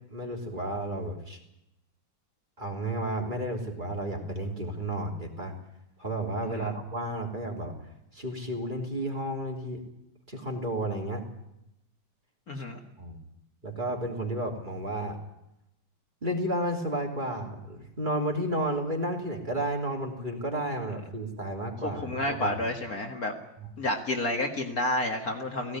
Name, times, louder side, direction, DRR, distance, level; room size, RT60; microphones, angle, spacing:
voice 1, 0.0-1.4 2.6-5.5 6.0-9.8 10.3-11.2 12.5-12.6 13.0-13.2 13.6-15.2 16.2-22.6 23.6-23.7, right 1 dB, 20° right, 2 dB, 3.3 m, -32 dB
voice 2, 12.5-12.8 21.8-23.3 23.8-25.8, left 1 dB, 45° left, 3 dB, 2.2 m, -30 dB
17.5 x 16.5 x 9.5 m, 0.85 s
omnidirectional pair, 2.2 m